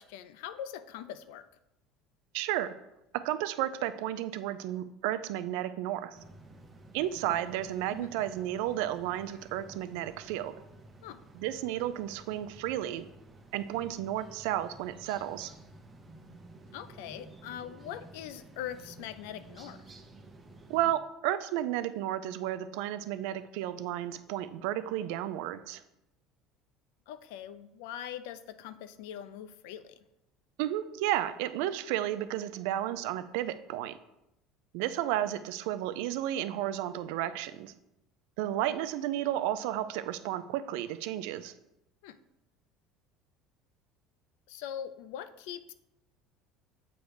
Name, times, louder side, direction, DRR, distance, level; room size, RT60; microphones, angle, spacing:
voice 1, 0.0-1.5 7.9-8.1 11.0-11.3 16.7-20.0 27.1-30.0 42.0-42.2 44.5-45.7, left 10 dB, 85° left, 13 dB, 0.4 m, -42 dB
voice 2, 2.3-2.7 3.1-6.2 6.9-10.5 11.4-13.1 13.5-15.5 20.7-25.8 30.6-34.0 34.7-37.7 38.4-41.5, right 12 dB, 80° right, 12 dB, 0.4 m, -32 dB
sound 1, 6.1-20.9, right 2 dB, 20° right, 0.8 m, -52 dB
7.9 x 3.1 x 4.8 m, 0.87 s
cardioid pair, 125°, 0 cm